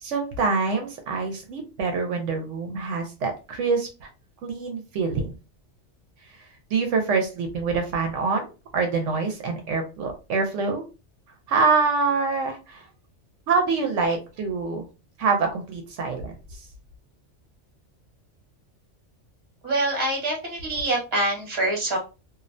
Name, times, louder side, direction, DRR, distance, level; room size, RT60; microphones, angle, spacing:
voice 1, 0.0-4.1 4.4-5.3 6.3-10.8 11.5-12.9 13.5-14.9 15.2-16.6, right 4 dB, 80° right, 3 dB, 0.9 m, -25 dB
voice 2, 19.6-22.0, right 1 dB, 35° right, -1 dB, 1.1 m, -25 dB
2.6 x 2.0 x 2.5 m, 0.30 s
omnidirectional pair, 1.2 m